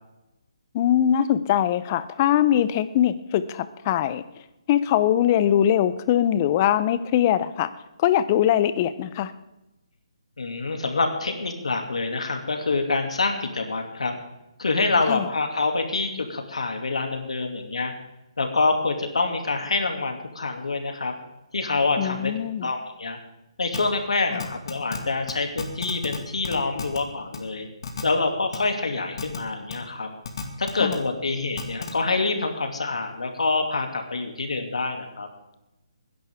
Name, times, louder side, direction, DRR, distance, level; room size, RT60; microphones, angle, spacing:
voice 1, 0.7-4.2 4.7-7.7 8.0-9.3 15.1-15.3 22.0-22.7 24.3-24.4 30.8-31.0, left 10 dB, 25° left, 14 dB, 0.6 m, -22 dB
voice 2, 10.4-14.1 14.6-17.9 18.4-21.1 21.5-22.3 22.6-23.2 23.6-27.7 28.0-30.1 30.6-35.3, left 3 dB, 80° left, 4 dB, 2.5 m, -26 dB
sound 1, 23.7-23.8 24.4-25.0 25.3-25.4 25.6-26.2 26.4-27.0 27.3-27.4 27.8-28.0 28.5-28.6 29.2-29.4 29.7-29.8 30.2-31.0 31.6-31.9, left 6 dB, 50° left, 2.1 m, -31 dB
20.0 x 10.5 x 3.6 m, 0.97 s
hypercardioid pair, 160°, 3 cm